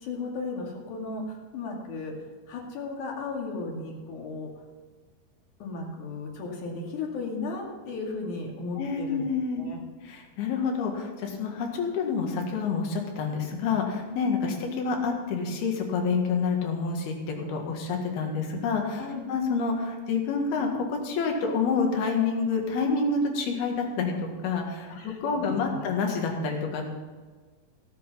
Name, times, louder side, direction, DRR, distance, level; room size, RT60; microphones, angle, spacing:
voice 1, 0.0-2.1 2.5-4.5 5.6-9.3 9.6-9.8 19.0-19.2 24.9-25.6, left 3 dB, 55° left, -1 dB, 3.4 m, -35 dB
voice 2, 8.8-9.7 10.1-17.1 17.5-19.0 19.3-26.8, left 4 dB, 70° left, 1 dB, 3.6 m, -28 dB
17.0 x 8.3 x 5.6 m, 1.4 s
omnidirectional pair, 4.8 m